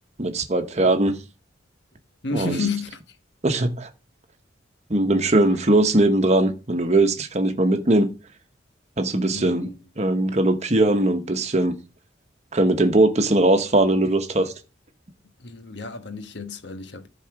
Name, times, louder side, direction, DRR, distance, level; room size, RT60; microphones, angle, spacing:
voice 1, 0.2-1.2 2.3-2.7 3.4-3.9 4.9-8.1 9.0-9.7 10.0-11.8 12.5-14.5, right 2 dB, 35° right, 1.0 m, -20 dB
voice 2, 2.2-3.2 9.3-9.8 15.4-17.1, left 4 dB, 65° left, 1.2 m, -31 dB
11.0 x 4.2 x 5.9 m
head